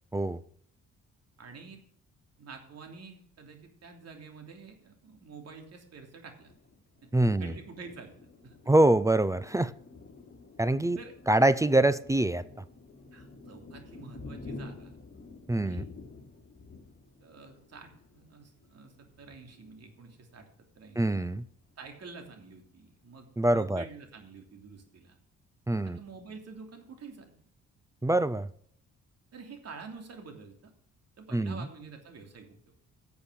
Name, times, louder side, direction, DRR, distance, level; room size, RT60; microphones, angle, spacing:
voice 1, 1.4-1.8 2.4-6.5 7.0-7.1 7.4-8.2 8.4-8.6 11.0-11.1 13.1-14.9 15.6-15.8 17.2-20.5 20.7-21.3 21.8-25.2 25.8-27.3 29.3-30.7 31.2-32.7, right 4 dB, 55° right, 4 dB, 3.1 m, -48 dB
Thunder, 6.4-20.8 21.3-21.4 21.7-22.3, left 3 dB, 30° left, 3.7 m, -49 dB
voice 2, 7.1-7.5 8.7-9.7 10.6-11.0 11.3-12.4 15.5-15.8 21.0-21.4 23.4-23.8 25.7-26.0 28.0-28.5 31.3-31.6, right 1 dB, 10° right, 16 dB, 0.5 m, -24 dB
11.5 x 7.0 x 6.4 m, 0.63 s
cardioid pair, 90°, 30 cm